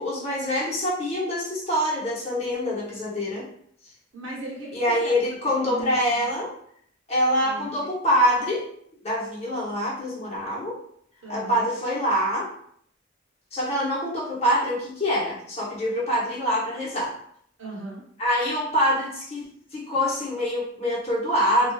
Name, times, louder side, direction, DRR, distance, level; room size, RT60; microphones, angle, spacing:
voice 1, 0.0-3.4 4.7-6.5 7.1-8.6 9.0-10.8 11.3-12.5 13.5-17.1 18.2-19.5 19.7-21.7, equal, 30° left, -6 dB, 0.8 m, -25 dB
voice 2, 4.1-5.1 5.5-6.3 7.4-7.9 11.2-11.7 17.6-18.0, right 2 dB, 80° right, -2 dB, 0.9 m, -38 dB
2.4 x 2.3 x 2.3 m, 0.64 s
head